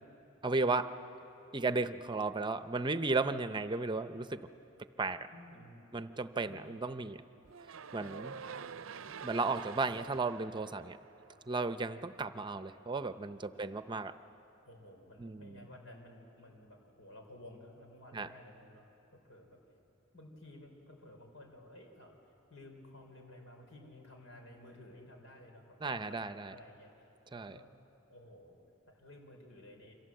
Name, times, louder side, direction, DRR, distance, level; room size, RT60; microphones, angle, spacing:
voice 1, 0.4-0.9 1.5-4.4 5.0-5.3 5.9-7.2 7.9-8.3 9.2-11.0 11.5-14.1 15.2-15.7 18.1-18.3 25.8-26.5 27.3-27.6, right 3 dB, 25° right, 11 dB, 0.7 m, -34 dB
voice 2, 5.3-5.9 6.4-6.8 8.0-8.8 14.6-18.9 19.1-19.6 20.1-22.2 22.5-26.2 26.5-27.7 28.1-28.6 28.9-30.0, left 1 dB, 90° left, 3 dB, 4.6 m, -54 dB
sound 1, 7.5-11.7, right 6 dB, 85° right, 0.6 m, -47 dB
28.5 x 25.5 x 7.8 m, 2.9 s
head